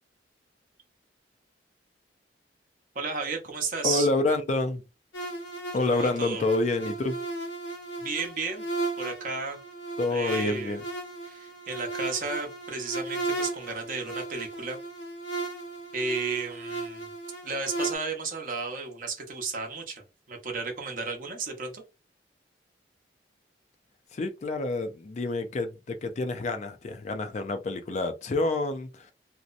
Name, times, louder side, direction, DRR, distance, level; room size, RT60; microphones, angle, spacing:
voice 1, 2.9-4.1 5.8-6.4 8.0-8.7 9.0-9.6 10.1-10.8 11.2-14.8 15.9-17.1 17.4-20.0 20.3-21.8, right 4 dB, 50° right, 0.8 m, -33 dB
voice 2, 3.8-4.8 5.7-7.2 10.0-10.8 24.1-29.1, left 2 dB, 40° left, 0.4 m, -28 dB
sound 1, 5.1-18.0, right 2 dB, 85° left, 0.8 m, -35 dB
2.7 x 2.0 x 2.5 m
head